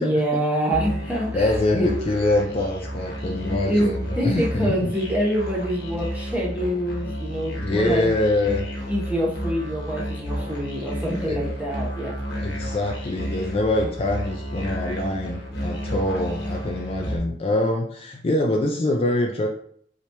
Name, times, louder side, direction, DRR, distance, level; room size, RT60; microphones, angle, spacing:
voice 1, 0.0-2.0 3.6-8.1 8.9-12.1, equal, 10° right, -3 dB, 0.7 m, -26 dB
Musical instrument, 0.7-17.2, equal, 65° left, 1.0 m, -31 dB
voice 2, 1.3-4.9 7.6-8.7 11.2-11.4 12.4-19.5, left 1 dB, 35° left, 1 dB, 0.3 m, -24 dB
3.3 x 2.9 x 2.8 m, 0.63 s
head